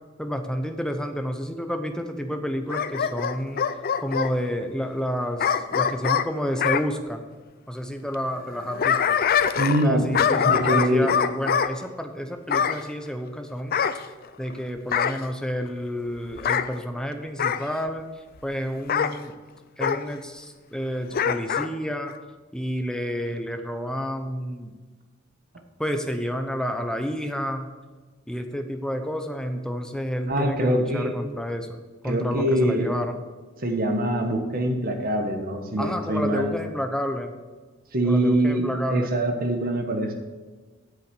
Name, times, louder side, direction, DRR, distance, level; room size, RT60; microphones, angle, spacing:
voice 1, 0.2-3.6 4.0-7.2 7.7-9.2 9.8-13.8 14.4-18.1 18.4-19.3 19.8-22.1 22.5-24.7 25.8-27.7 28.3-31.8 32.0-33.2 35.8-37.3 38.0-39.1, equal, 5° left, 6 dB, 0.8 m, -30 dB
Bark / Growling, 2.7-4.3 5.4-6.9 8.5-9.9 10.1-11.7 12.5-12.8 13.7-14.5 14.9-15.2 16.3-16.7 17.4-17.7 18.9-19.1 19.8-20.0 21.1-21.7 22.1-22.2, left 7 dB, 45° left, 0.4 m, -24 dB
voice 2, 9.6-10.1 10.4-11.2 30.3-31.1 32.0-32.9 33.6-36.5 37.9-40.1, right 1 dB, 45° right, 4 dB, 1.4 m, -24 dB
8.0 x 7.6 x 6.9 m, 1.3 s
head